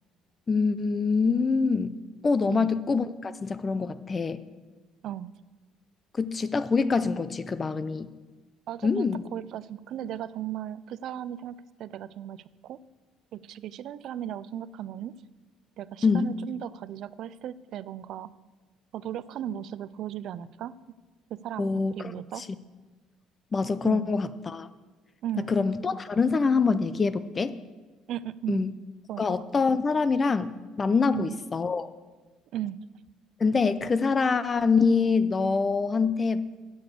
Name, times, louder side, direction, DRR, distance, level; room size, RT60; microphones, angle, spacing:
voice 1, 0.5-2.0 2.2-4.4 6.2-8.1 8.8-9.2 16.0-16.3 21.6-22.1 22.4-22.5 23.5-24.7 25.4-27.5 28.5-28.7 29.2-31.9 33.4-36.5, left 4 dB, 25° left, 14 dB, 0.4 m, -25 dB
voice 2, 8.7-12.8 13.3-15.1 15.8-18.3 18.9-20.8 21.3-22.5 23.8-24.1 25.2-25.5 28.1-28.6 29.1-29.4 31.1-31.4 32.5-32.8, right 11 dB, 60° right, 17 dB, 0.3 m, -36 dB
7.8 x 6.8 x 8.2 m, 1.3 s
cardioid pair, 130°, 0 cm